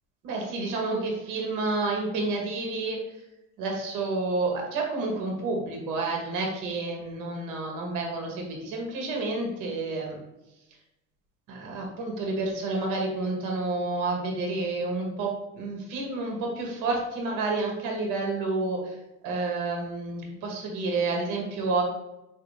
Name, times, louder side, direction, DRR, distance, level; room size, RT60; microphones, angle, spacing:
voice 1, 0.2-3.0 3.6-10.2 11.5-15.3 15.5-18.9 19.2-21.8, right 3 dB, 65° right, 1 dB, 1.3 m, -29 dB
3.8 x 2.9 x 3.1 m, 0.94 s
hypercardioid pair, 80°, 34 cm